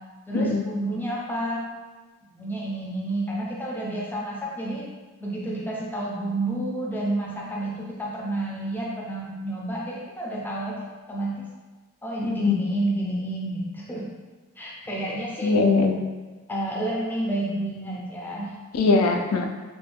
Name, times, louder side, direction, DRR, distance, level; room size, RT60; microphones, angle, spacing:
voice 1, 0.3-1.6 2.3-4.9 5.2-11.4 12.0-14.1 14.6-15.6 16.5-18.6, right 1 dB, 10° left, -4 dB, 0.4 m, -30 dB
voice 2, 12.2-12.6 15.4-16.0 18.8-19.5, left 3 dB, 90° left, 3 dB, 0.4 m, -21 dB
3.1 x 2.2 x 3.3 m, 1.3 s
head